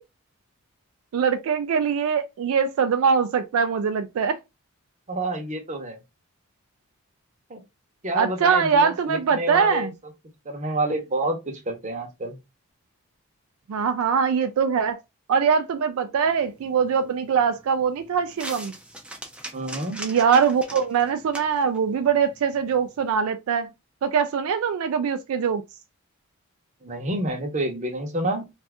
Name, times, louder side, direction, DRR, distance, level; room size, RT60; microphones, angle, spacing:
voice 1, 1.1-4.4 8.2-9.9 13.7-15.0 15.3-18.7 20.0-23.7 24.0-25.6, right 6 dB, 70° right, 0.3 m, -22 dB
voice 2, 5.1-6.0 7.5-7.6 8.0-9.9 10.4-12.4 19.5-20.0 26.8-28.5, right 1 dB, 35° right, 0.8 m, -28 dB
sound 1, 16.3-23.1, right 1 dB, 5° right, 0.5 m, -42 dB
2.6 x 2.4 x 3.4 m
head